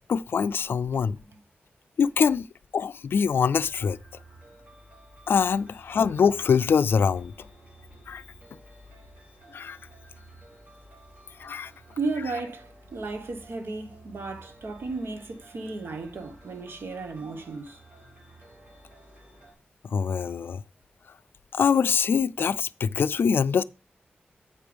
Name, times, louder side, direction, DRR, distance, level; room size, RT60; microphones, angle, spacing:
voice 1, 0.1-1.2 2.0-2.5 2.7-4.0 5.3-7.3 8.1-8.2 9.5-9.8 11.4-11.7 19.9-20.6 21.5-23.6, left 6 dB, 75° left, 0.3 m, -24 dB
sound 1, 3.1-19.5, right 2 dB, 40° right, 4.2 m, -52 dB
voice 2, 11.6-17.8, right 3 dB, 80° right, 1.2 m, -34 dB
8.4 x 5.1 x 5.1 m
wide cardioid pair, 145°, 4 cm